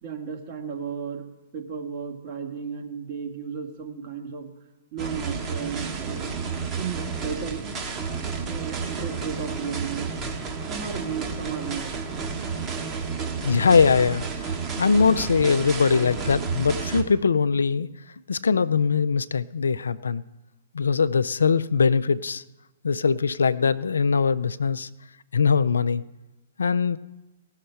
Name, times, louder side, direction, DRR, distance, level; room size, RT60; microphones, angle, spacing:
voice 1, 0.0-1.3 1.5-4.5 4.9-6.3 6.8-7.6 8.4-10.1 10.7-11.9, right 6 dB, 45° right, 3 dB, 1.8 m, -34 dB
sound 1, 5.0-17.0, right 5 dB, 30° right, 1.4 m, -31 dB
voice 2, 13.4-14.5 14.8-17.9 18.3-20.2 20.7-22.4 22.8-24.9 25.3-26.0 26.6-27.0, left 5 dB, 80° left, 14 dB, 0.4 m, -21 dB
17.0 x 6.5 x 5.6 m, 1.0 s
hypercardioid pair, 120°, 0 cm